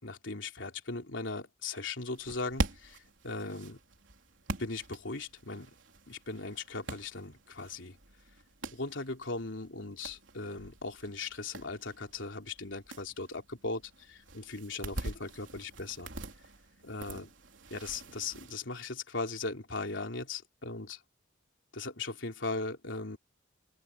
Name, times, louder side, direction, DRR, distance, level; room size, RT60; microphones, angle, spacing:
voice 1, 0.0-3.8 4.6-5.7 6.1-8.0 8.7-16.1 16.8-17.3 17.7-21.0 21.7-23.2, left 3 dB, 80° left, 3.1 m, -38 dB
sound 1, 2.1-18.5, right 2 dB, 85° right, 3.5 m, -43 dB
open air
head